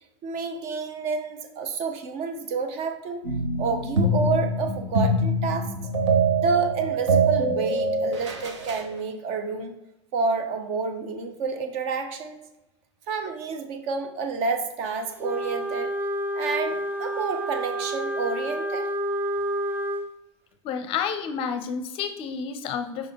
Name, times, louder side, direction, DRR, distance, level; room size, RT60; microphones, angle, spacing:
voice 1, 0.2-3.2 3.6-5.7 6.4-9.7 10.1-12.4 13.1-16.0 16.3-18.9, right 4 dB, 40° right, 7 dB, 0.8 m, -29 dB
sound 1, 3.3-8.9, right 2 dB, 70° right, 1.1 m, -24 dB
Wind instrument woodwind instrument, 15.2-20.1, right 1 dB, 15° right, 0.5 m, -29 dB
voice 2, 20.6-23.1, left 6 dB, 35° left, 8 dB, 0.6 m, -30 dB
5.2 x 5.1 x 3.6 m, 0.97 s
figure-of-eight pair, 90°, 16 cm